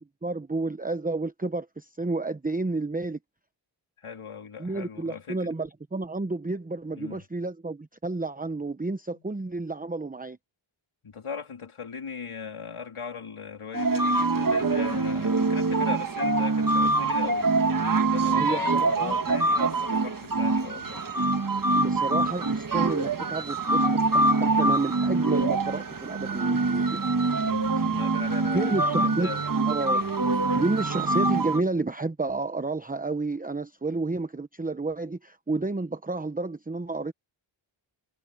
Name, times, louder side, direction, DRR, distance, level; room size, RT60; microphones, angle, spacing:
voice 1, 0.2-3.2 4.6-10.4 18.2-19.2 21.8-27.0 27.8-28.0 28.5-29.3 29.7-30.0 30.6-37.1, right 3 dB, 15° right, 0.9 m, -30 dB
voice 2, 4.0-5.6 6.9-7.2 9.2-9.3 11.0-17.5 18.1-21.0 27.4-29.5, left 6 dB, 80° left, 3.7 m, -39 dB
sound 1, 13.7-31.6, right 3 dB, 40° right, 1.6 m, -25 dB
wide cardioid pair, 60°, 49 cm